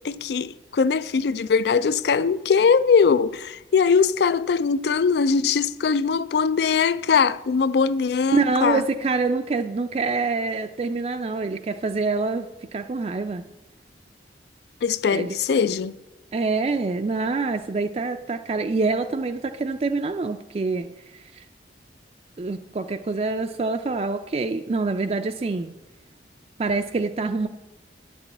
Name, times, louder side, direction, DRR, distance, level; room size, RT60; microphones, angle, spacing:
voice 1, 0.0-8.8 14.8-15.9, left 5 dB, 70° left, 0.4 m, -21 dB
voice 2, 8.3-13.4 15.1-15.3 16.3-20.9 21.1-21.4 22.4-25.7 26.6-27.5, right 3 dB, 35° right, 0.3 m, -26 dB
9.6 x 6.1 x 7.8 m
head